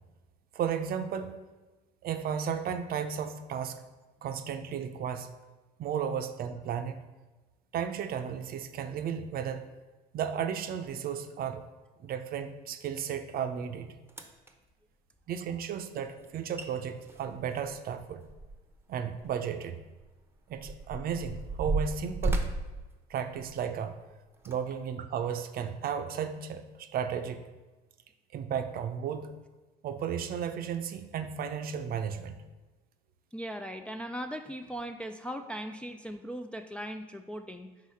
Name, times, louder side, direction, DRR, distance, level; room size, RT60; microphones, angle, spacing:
voice 1, 0.5-1.4 2.0-3.8 4.2-5.3 5.8-7.0 7.7-9.6 10.1-11.6 12.0-13.9 15.3-18.3 18.9-19.8 20.5-22.5 23.1-24.0 24.4-27.4 28.3-29.3 29.8-32.4, right 7 dB, 45° right, 8 dB, 0.6 m, -34 dB
sound 1, 13.6-13.7 14.1-14.5 16.2-16.3 16.6-16.7 17.0-18.8 19.2-19.3 20.0-23.7 24.3-24.6 25.2-25.3, right 2 dB, 10° right, 0.7 m, -34 dB
voice 2, 33.3-37.7, equal, 5° left, 5 dB, 0.3 m, -39 dB
4.9 x 3.7 x 5.4 m, 1.2 s
supercardioid pair, 90°, 20 cm